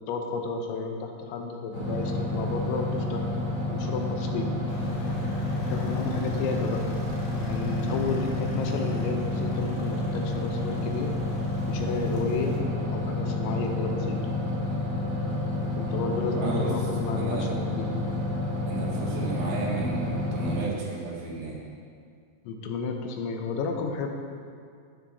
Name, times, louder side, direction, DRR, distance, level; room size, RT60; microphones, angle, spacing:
voice 1, 0.1-3.3 3.7-4.5 5.7-6.9 7.4-11.1 11.7-12.6 12.9-14.2 15.8-17.9 22.4-24.1, left 4 dB, 85° left, 3 dB, 3.1 m, -32 dB
sound 1, 1.7-20.6, left 2 dB, 35° left, 2.2 m, -29 dB
sound 2, 4.7-12.6, equal, 70° left, 2.3 m, -40 dB
voice 2, 15.9-16.7 17.2-17.5 18.7-21.6, right 3 dB, 85° right, -4 dB, 4.0 m, -33 dB
12.5 x 9.5 x 2.7 m, 2.2 s
omnidirectional pair, 5.2 m